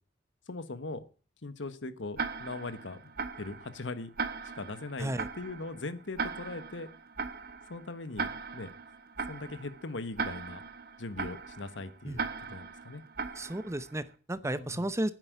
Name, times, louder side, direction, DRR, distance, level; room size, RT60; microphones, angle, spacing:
voice 1, 0.5-1.0 1.4-3.1 3.4-4.1 4.5-6.9 7.7-8.7 9.3-10.6 11.0-13.0 14.4-14.9, left 3 dB, 80° left, 13 dB, 1.2 m, -40 dB
Tick-tock, 2.2-14.0, right 4 dB, 55° right, 1.1 m, -39 dB
voice 2, 13.4-15.1, right 1 dB, 15° right, 15 dB, 0.7 m, -33 dB
9.8 x 7.6 x 9.4 m, 0.39 s
head